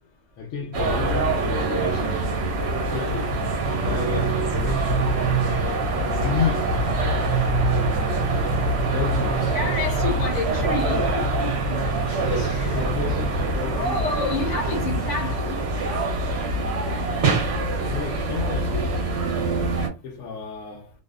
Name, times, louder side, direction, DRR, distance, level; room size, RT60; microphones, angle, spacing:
voice 1, 0.4-3.4 3.7-7.1 8.2-8.4 8.9-9.7 12.2-14.0 17.8-19.1 20.0-20.9, left 5 dB, 75° left, 0.9 m, -32 dB
sound 1, 0.7-19.9, right 2 dB, 60° right, 1.0 m, -24 dB
voice 2, 9.5-11.5 12.5-12.8 13.6-15.6, left 3 dB, 40° left, 0.8 m, -29 dB
2.6 x 2.0 x 2.3 m
omnidirectional pair, 1.3 m